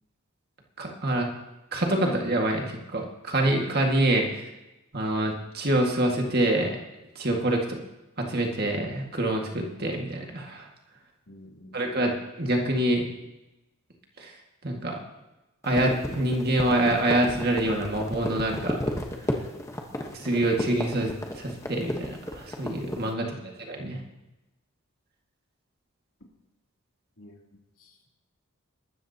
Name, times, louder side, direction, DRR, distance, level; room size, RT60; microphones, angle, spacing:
voice 1, 0.8-1.3 1.7-4.3 4.9-6.8 7.2-7.8 8.2-10.7 11.7-13.1 14.2-14.3 14.6-15.0 15.6-18.8 20.1-23.3 23.6-24.0, right 1 dB, 45° right, 1 dB, 1.9 m, -26 dB
voice 2, 11.3-11.8 23.2-23.6 27.2-28.1, left 1 dB, 70° left, -1 dB, 3.0 m, -50 dB
sound 1, 15.6-23.1, left 1 dB, 15° left, 1.1 m, -33 dB
21.5 x 13.0 x 2.9 m, 0.99 s
head